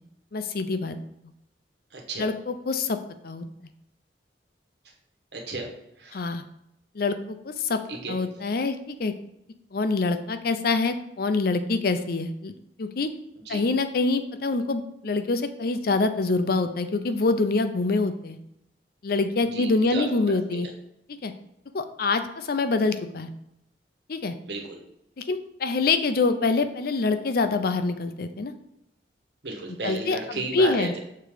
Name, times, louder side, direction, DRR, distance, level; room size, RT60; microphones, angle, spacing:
voice 1, 0.3-1.0 2.2-3.0 3.2-3.4 6.1-6.4 6.9-7.8 8.1-9.1 9.7-12.5 12.8-13.1 13.5-18.4 19.0-20.7 21.1-21.3 21.7-23.3 24.1-24.4 25.2-28.5 29.8-30.9, left 3 dB, 55° left, 10 dB, 0.5 m, -25 dB
voice 2, 1.9-2.3 5.3-5.7 6.0-6.2 7.9-8.2 13.5-13.6 19.5-20.1 20.5-20.7 24.4-24.8 29.4-31.0, right 2 dB, 75° right, 1 dB, 1.4 m, -33 dB
6.7 x 3.8 x 5.0 m, 0.81 s
head